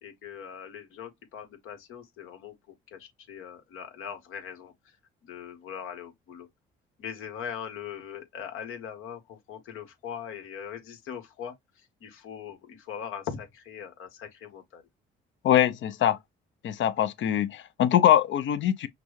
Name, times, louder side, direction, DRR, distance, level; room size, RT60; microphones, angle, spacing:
voice 1, 0.0-2.6 2.9-4.7 5.2-6.5 7.0-11.5 12.0-14.8, left 8 dB, 80° left, 1.5 m, -40 dB
voice 2, 15.4-16.2 16.6-18.9, left 10 dB, 65° left, 0.7 m, -23 dB
5.9 x 2.2 x 3.2 m
cardioid pair, 80°, 21 cm